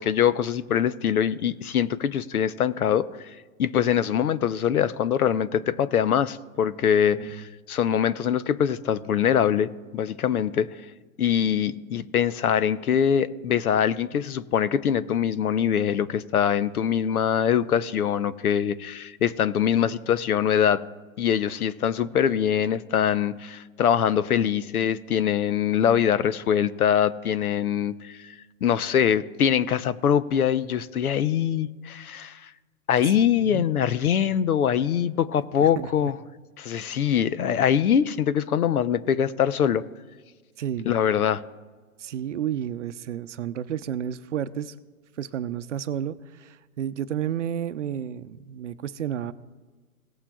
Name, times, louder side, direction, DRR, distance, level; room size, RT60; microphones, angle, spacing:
voice 1, 0.0-3.1 3.6-10.7 11.2-20.8 21.2-28.3 28.6-32.5 32.9-36.2 36.6-39.8 40.8-41.4, left 8 dB, 80° left, 15 dB, 0.8 m, -23 dB
voice 2, 33.0-33.7 35.6-35.9 40.6-40.9 42.0-44.7 45.2-49.3, right 10 dB, 55° right, 12 dB, 0.6 m, -31 dB
18.0 x 8.7 x 2.3 m, 1.4 s
hypercardioid pair, 155°, 43 cm